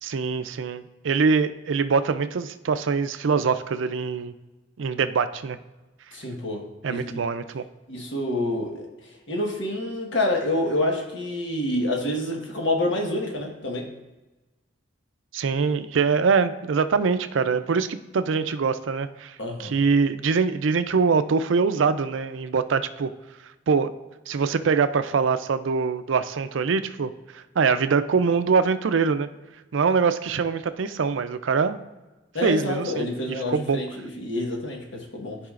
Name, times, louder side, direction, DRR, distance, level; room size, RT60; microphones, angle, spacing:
voice 1, 0.0-4.3 4.8-5.6 6.8-7.6 15.3-23.1 23.7-23.9 24.3-29.3 29.7-31.8 32.4-33.8, right 5 dB, 85° right, 11 dB, 0.4 m, -23 dB
voice 2, 6.1-7.2 7.9-8.9 9.3-13.9 19.4-19.7 32.3-35.4, left 1 dB, 80° left, 1 dB, 1.4 m, -27 dB
13.5 x 4.9 x 2.5 m, 1.1 s
head